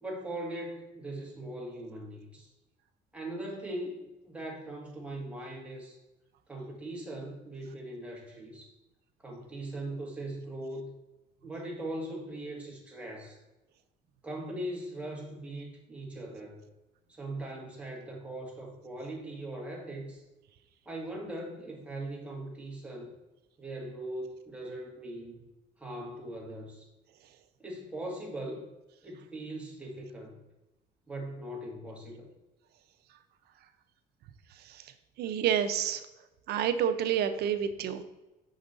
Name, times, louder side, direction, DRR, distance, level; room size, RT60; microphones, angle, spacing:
voice 1, 0.0-2.5 3.1-6.0 6.5-8.8 9.2-10.9 11.4-13.4 14.2-16.7 17.1-20.2 20.9-23.1 23.6-25.4 25.8-26.9 27.6-28.7 29.0-30.4 31.1-32.3, right 1 dB, 5° right, -2 dB, 1.9 m, -40 dB
voice 2, 35.2-36.0 36.5-38.0, right 9 dB, 70° right, 10 dB, 0.7 m, -29 dB
6.1 x 5.2 x 4.0 m, 1.0 s
cardioid pair, 110°, 17 cm